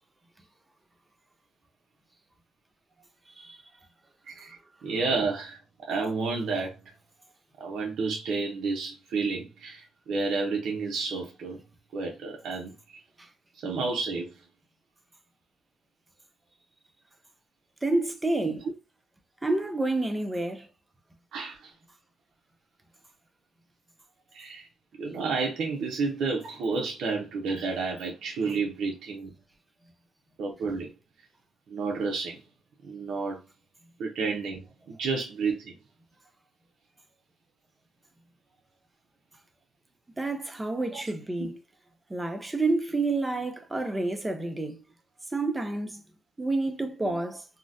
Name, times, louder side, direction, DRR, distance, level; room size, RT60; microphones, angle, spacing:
voice 1, 3.3-3.6 13.2-13.3 17.8-18.7 19.4-20.7 40.2-41.6 42.1-44.8 45.3-46.0 46.4-47.5, right 2 dB, 15° right, 0.6 m, -29 dB
voice 2, 4.3-6.7 7.6-11.6 11.9-13.0 13.6-14.3 18.5-18.6 21.3-21.7 24.3-24.7 25.0-29.3 30.4-30.9 31.7-32.4 32.9-33.4 34.0-34.6 35.0-35.7 40.9-41.0 41.4-41.5 47.0-47.2, right 4 dB, 70° right, 0.6 m, -31 dB
3.8 x 2.1 x 2.4 m
cardioid pair, 90°, 0 cm